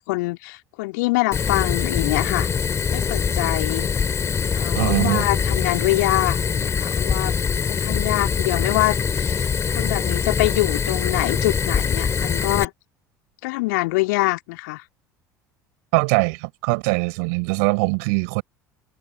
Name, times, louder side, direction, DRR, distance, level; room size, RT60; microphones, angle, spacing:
voice 1, 0.0-2.5 2.9-3.9 4.6-7.4 7.7-9.4 9.8-12.7 13.4-14.8, left 24 dB, 60° left, 2.4 m, -24 dB
Fire, 1.3-12.6, left 6 dB, 25° left, 4.0 m, -23 dB
voice 2, 4.7-5.3 15.9-18.4, right 35 dB, 60° right, 5.7 m, -22 dB
figure-of-eight pair, 65°, 10 cm